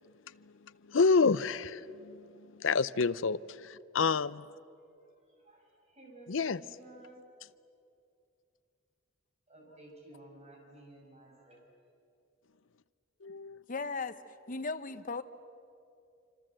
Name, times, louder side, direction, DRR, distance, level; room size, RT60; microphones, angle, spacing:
voice 1, 0.9-2.3 2.6-4.5 6.3-6.6 13.2-13.6, left 4 dB, 70° left, 0.6 m, -28 dB
voice 2, 4.8-7.2 9.5-11.6, right 1 dB, 35° right, 7.1 m, -54 dB
voice 3, 13.7-14.2 14.5-15.2, left 4 dB, 40° left, 1.0 m, -36 dB
26.5 x 26.0 x 7.7 m
head